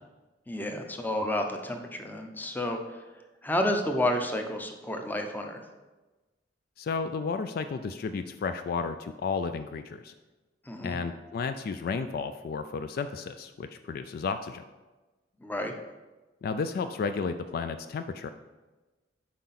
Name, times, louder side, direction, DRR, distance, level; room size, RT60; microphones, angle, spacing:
voice 1, 0.5-3.0 3.4-5.6 10.7-11.0 15.4-15.7, left 1 dB, 10° left, 4 dB, 0.6 m, -30 dB
voice 2, 6.8-10.1 10.8-14.6 16.4-18.3, left 5 dB, 55° left, 9 dB, 0.3 m, -32 dB
7.6 x 4.7 x 4.2 m, 1.2 s
head